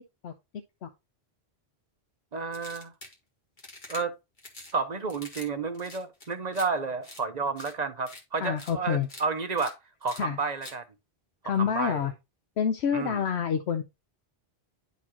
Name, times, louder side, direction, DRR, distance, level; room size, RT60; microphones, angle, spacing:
voice 1, 2.3-2.9 3.9-4.2 4.7-10.8 11.6-12.0 12.9-13.2, right 4 dB, 45° right, 0.8 m, -31 dB
sound 1, 2.5-3.2 3.6-4.0 4.4-4.7 5.1-5.5 5.7-6.7 7.0-7.2 7.6-7.7 8.1-8.2 8.6-8.7 9.0-9.2 9.6-9.7 10.1-10.2 10.6-10.8, left 2 dB, 50° left, 2.0 m, -45 dB
voice 2, 8.4-9.1 10.2-10.4 11.4-12.1 12.6-13.8, left 7 dB, 85° left, 1.0 m, -27 dB
11.0 x 4.1 x 2.9 m
omnidirectional pair, 1.1 m